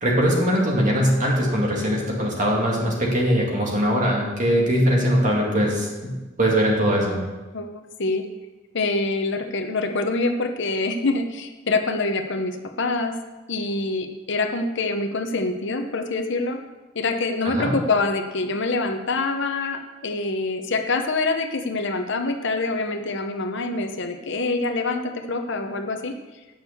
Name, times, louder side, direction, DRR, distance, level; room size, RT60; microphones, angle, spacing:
voice 1, 0.0-6.1 6.4-7.2 17.4-17.7, equal, 40° right, -2 dB, 2.4 m, -21 dB
voice 2, 7.5-8.3 8.7-13.1 13.5-16.6 16.9-26.1, left 3 dB, 60° left, 5 dB, 0.9 m, -25 dB
8.9 x 6.4 x 6.9 m, 1.2 s
head